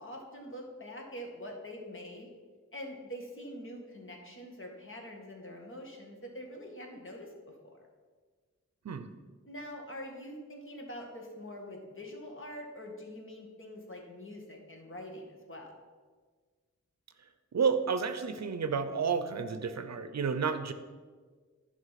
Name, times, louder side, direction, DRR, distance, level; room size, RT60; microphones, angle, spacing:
voice 1, 0.0-2.3 2.7-7.3 7.6-7.8 9.5-15.7, equal, 45° left, 1 dB, 1.8 m, -44 dB
voice 2, 17.5-20.7, right 6 dB, 65° right, 10 dB, 0.6 m, -31 dB
11.0 x 5.4 x 5.8 m, 1.5 s
wide cardioid pair, 120°, 30 cm